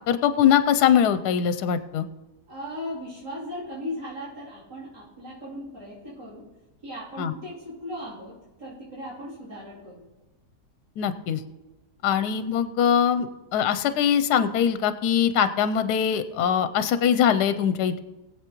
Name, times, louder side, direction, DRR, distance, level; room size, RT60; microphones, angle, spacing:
voice 1, 0.1-2.1 7.2-7.3 11.0-11.4 12.0-13.3 13.5-18.0, left 8 dB, 80° left, 11 dB, 1.1 m, -22 dB
voice 2, 2.5-6.5 6.8-10.1 12.1-12.2, left 1 dB, 80° right, -9 dB, 3.6 m, -37 dB
20.5 x 7.9 x 3.0 m, 1.1 s
omnidirectional pair, 1.7 m